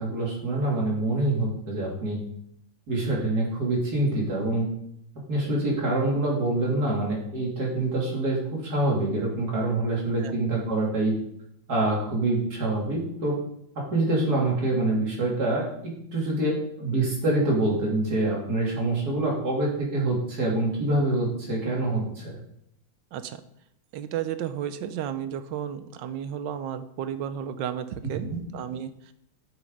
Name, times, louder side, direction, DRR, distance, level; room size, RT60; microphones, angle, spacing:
voice 1, 0.0-2.2 2.9-4.7 5.3-11.1 11.7-13.3 13.9-22.4 28.2-28.4, right 2 dB, 55° right, -3 dB, 3.1 m, -26 dB
voice 2, 23.1-23.4 23.9-29.1, right 9 dB, 85° right, 11 dB, 1.4 m, -33 dB
8.5 x 6.2 x 5.3 m, 0.74 s
omnidirectional pair, 2.0 m